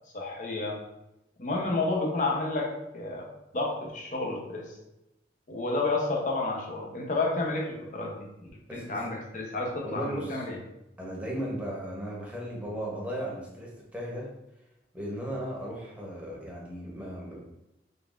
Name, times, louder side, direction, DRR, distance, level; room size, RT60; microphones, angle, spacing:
voice 1, 0.1-0.8 1.4-3.3 3.5-4.8 5.5-8.3 8.7-10.6, left 2 dB, 45° left, -1 dB, 0.7 m, -30 dB
voice 2, 8.7-9.1 9.8-10.4 11.0-14.3 14.9-17.4, equal, 10° right, -4 dB, 0.9 m, -36 dB
3.9 x 3.4 x 2.5 m, 0.91 s
head